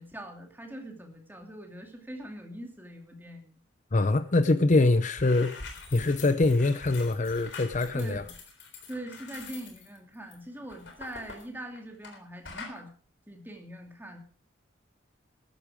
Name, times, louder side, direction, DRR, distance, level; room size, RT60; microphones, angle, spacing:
voice 1, 0.0-3.6 7.9-8.3 8.9-12.9 13.3-14.2, right 1 dB, 10° right, 2.7 m, -42 dB
voice 2, 3.9-5.6 5.9-8.2, left 2 dB, 40° left, 0.6 m, -24 dB
sound 1, 5.1-12.2 12.4-12.8, left 4 dB, 65° left, 3.7 m, -45 dB
14.0 x 12.5 x 4.9 m
head